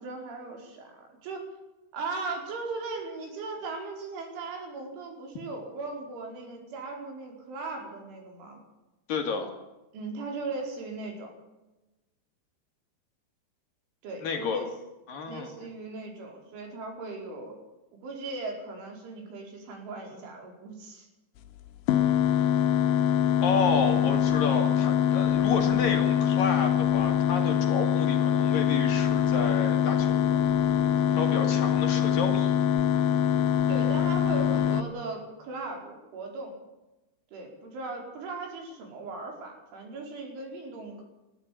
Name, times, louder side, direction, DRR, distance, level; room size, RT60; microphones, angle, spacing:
voice 1, 0.0-1.5 1.9-8.6 9.9-11.3 14.0-14.7 15.3-17.6 17.9-21.1 23.4-24.1 31.1-31.3 33.7-36.5 37.3-41.0, right 3 dB, 85° right, 2 dB, 7.4 m, -38 dB
voice 2, 9.1-9.5 14.2-14.6 15.1-15.5 23.4-30.4 31.2-32.6, left 4 dB, 55° left, 4 dB, 3.7 m, -31 dB
sound 1, 21.9-34.8, left 9 dB, 90° left, 3.5 m, -24 dB
20.5 x 14.5 x 8.9 m, 1.0 s
omnidirectional pair, 5.3 m